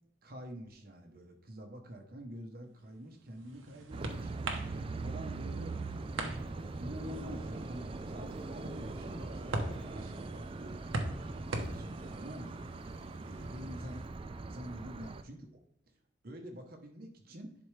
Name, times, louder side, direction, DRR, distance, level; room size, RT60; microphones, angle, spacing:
voice 1, 0.2-4.6 5.0-5.8 6.8-10.8 11.3-12.9 13.2-14.0 14.5-15.6 16.2-17.5, equal, 50° right, 3 dB, 0.9 m, -47 dB
sound 1, 3.0-14.1, right 2 dB, 85° right, 1.0 m, -43 dB
sound 2, 3.9-15.2, right 3 dB, 25° right, 0.3 m, -41 dB
10.5 x 4.3 x 3.2 m, 0.74 s
head